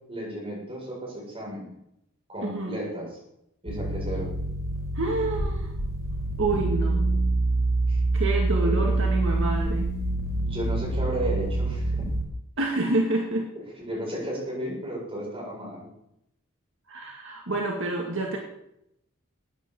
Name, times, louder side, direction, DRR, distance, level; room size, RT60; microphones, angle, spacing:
voice 1, 0.1-1.7 2.3-3.2 3.6-4.3 7.9-8.0 8.6-9.0 10.4-12.1 13.8-15.9, right 1 dB, 25° right, -3 dB, 7.5 m, -33 dB
voice 2, 2.4-2.8 4.9-5.7 6.4-7.1 8.1-9.9 12.6-13.5 16.9-18.4, right 2 dB, 65° right, 1 dB, 2.2 m, -28 dB
sound 1, 3.7-12.2, right 2 dB, 85° right, 4.5 m, -26 dB
15.0 x 9.5 x 7.7 m, 0.80 s
head